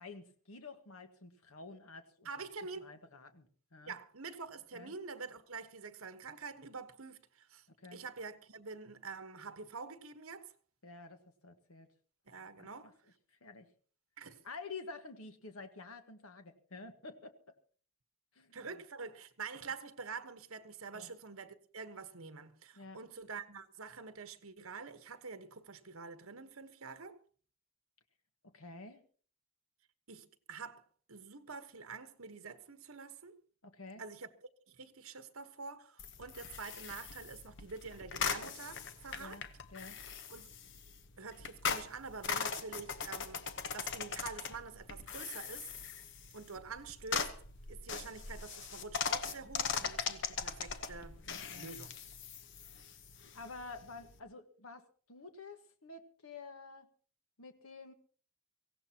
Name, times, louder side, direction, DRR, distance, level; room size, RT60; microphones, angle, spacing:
voice 1, 0.0-2.3 2.8-4.0 4.7-4.9 7.8-8.0 10.8-11.9 12.6-12.9 13.3-13.7 14.4-17.4 18.3-18.7 20.9-21.1 22.7-23.0 28.4-29.0 33.6-34.0 39.2-39.5 39.7-40.0 51.3-51.8 53.3-56.9 57.4-57.9, left 3 dB, 85° left, 1.6 m, -50 dB
voice 2, 2.2-2.9 3.8-7.7 7.9-10.5 12.3-12.9 14.2-14.4 18.5-27.2 30.1-33.4 34.0-34.3 34.7-39.4 40.3-40.5 41.2-45.7 46.3-47.3 47.7-51.2 51.5-52.0, right 5 dB, 75° right, 1.2 m, -47 dB
sound 1, 36.0-54.2, left 6 dB, 60° left, 1.0 m, -40 dB
23.5 x 16.5 x 2.9 m
head